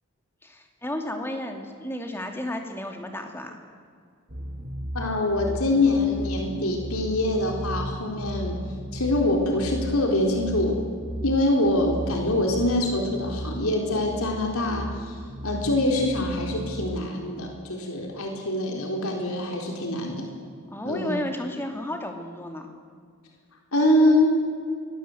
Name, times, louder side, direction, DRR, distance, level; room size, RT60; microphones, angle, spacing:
voice 1, 0.4-3.6 20.7-22.7, left 1 dB, 10° left, 4 dB, 2.6 m, -33 dB
sound 1, 4.3-17.0, equal, 45° right, 3.6 m, -35 dB
voice 2, 4.9-8.6 8.9-10.9 11.2-15.1 15.4-20.3 20.8-21.2 23.7-24.4, left 1 dB, 80° left, 2 dB, 4.1 m, -24 dB
25.5 x 22.0 x 8.0 m, 2.2 s
head